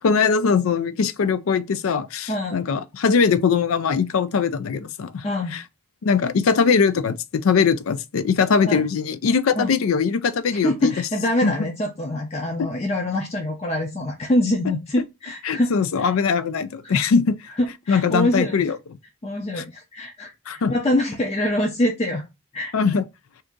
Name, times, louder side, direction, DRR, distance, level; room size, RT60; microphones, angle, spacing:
voice 1, 0.0-5.2 5.5-5.6 6.0-10.9 11.4-11.5 12.6-12.7 15.4-17.4 17.9-18.8 20.5-20.7 22.7-23.0, left 5 dB, 90° left, 0.4 m, -21 dB
voice 2, 2.3-2.6 5.2-5.5 8.7-8.8 9.6-9.7 10.5-15.7 16.0-16.1 16.8-17.0 17.6-18.7 19.2-22.2 22.5-22.7, left 1 dB, 30° left, 0.5 m, -24 dB
2.8 x 2.5 x 3.5 m
head